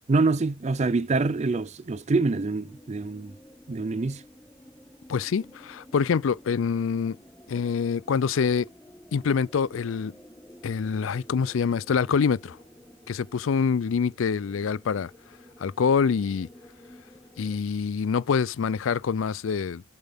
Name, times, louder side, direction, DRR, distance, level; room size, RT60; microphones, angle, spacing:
voice 1, 0.1-3.3 3.7-4.2, right 3 dB, 35° right, 0.4 m, -25 dB
sound 1, 2.2-17.6, equal, 10° left, 1.3 m, -52 dB
voice 2, 5.1-7.2 7.5-8.7 9.1-10.1 10.6-12.6 13.1-15.1 15.6-16.5 17.4-19.8, left 6 dB, 70° left, 0.4 m, -25 dB
8.0 x 6.9 x 3.6 m
head